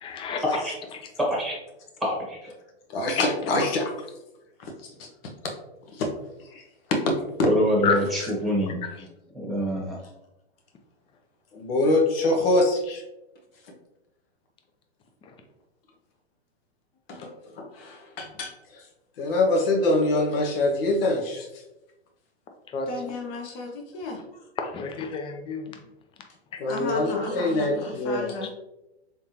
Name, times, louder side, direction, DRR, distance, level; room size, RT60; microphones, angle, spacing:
voice 1, 0.0-0.4 7.8-7.9 8.8-9.1 22.7-23.1 24.6-25.7, left 5 dB, 15° left, 4 dB, 0.5 m, -30 dB
voice 2, 1.2-1.5 2.0-2.4 7.4-8.8 9.3-10.0, equal, ahead, -4 dB, 1.3 m, -25 dB
voice 3, 2.9-3.9 4.6-5.1 5.9-6.1 6.5-6.6 6.9-7.1 7.4-7.5 11.5-13.0 17.1-17.3 17.5-18.8 19.2-21.5 26.6-28.3, left 2 dB, 60° left, 2 dB, 1.1 m, -24 dB
voice 4, 22.9-24.2 26.7-28.5, left 3 dB, 35° left, 1 dB, 1.0 m, -35 dB
3.7 x 3.5 x 2.8 m, 0.93 s
hypercardioid pair, 120°, 33 cm